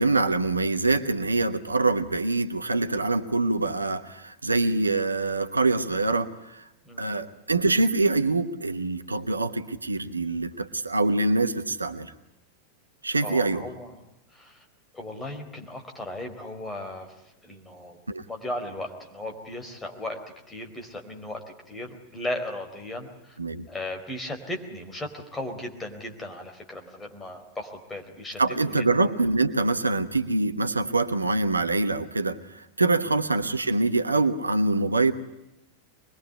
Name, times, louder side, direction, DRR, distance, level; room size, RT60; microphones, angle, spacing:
voice 1, 0.0-6.6 7.0-12.1 13.0-13.6 18.1-18.2 23.4-23.7 28.4-35.1, right 3 dB, 80° right, 10 dB, 1.2 m, -25 dB
voice 2, 6.8-7.2 13.2-14.0 14.3-14.6 14.9-17.1 17.4-18.0 18.3-20.2 20.5-23.4 23.7-28.4 28.8-28.9, left 1 dB, 10° left, 3 dB, 4.4 m, -36 dB
24.5 x 21.5 x 9.6 m, 0.89 s
figure-of-eight pair, 90°, 0 cm